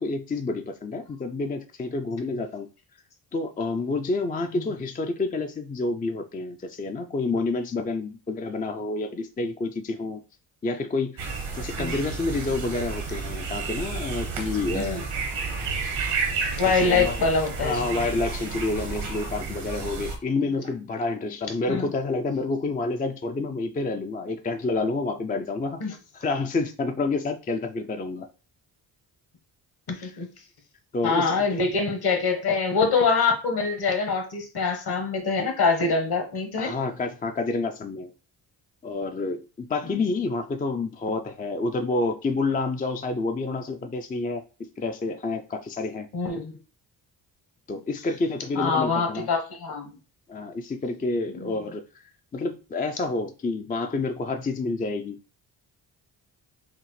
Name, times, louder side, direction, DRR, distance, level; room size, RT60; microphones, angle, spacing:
voice 1, 0.0-2.7 3.3-10.2 10.6-11.3 11.5-15.0 16.6-17.2 17.6-25.8 26.1-28.3 30.0-30.2 30.9-31.7 36.6-38.1 38.8-44.4 44.8-46.1 47.7-49.3 50.3-52.0 52.3-55.2, left 3 dB, 20° left, 0.4 m, -29 dB
sound 1, 11.2-20.2, right 4 dB, 85° right, 1.4 m, -31 dB
voice 2, 16.5-18.0 21.7-21.9 25.8-25.9 29.9-30.3 31.0-36.7 39.9-40.0 46.1-46.6 48.6-49.9 51.3-51.6, left 4 dB, 55° left, 1.4 m, -25 dB
5.7 x 2.1 x 3.1 m
cardioid pair, 70°, 45 cm